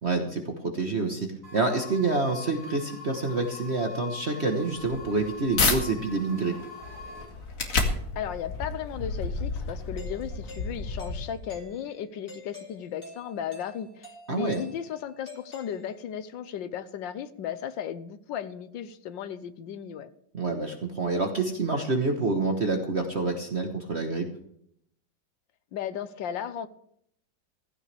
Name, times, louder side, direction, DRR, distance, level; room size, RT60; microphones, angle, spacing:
voice 1, 0.0-6.5 14.3-14.6 20.3-24.3, right 3 dB, 40° right, 3 dB, 1.4 m, -27 dB
sound 1, 1.4-7.2, left 3 dB, 10° left, 4.6 m, -43 dB
sound 2, 4.7-5.8 6.3-11.6, left 3 dB, 45° left, 2.1 m, -31 dB
voice 2, 8.1-20.1 25.7-26.7, left 9 dB, 85° left, 12 dB, 1.5 m, -35 dB
Doorbell, 10.0-16.3, left 2 dB, 30° left, 2.9 m, -48 dB
15.5 x 15.5 x 3.4 m, 0.70 s
omnidirectional pair, 2.0 m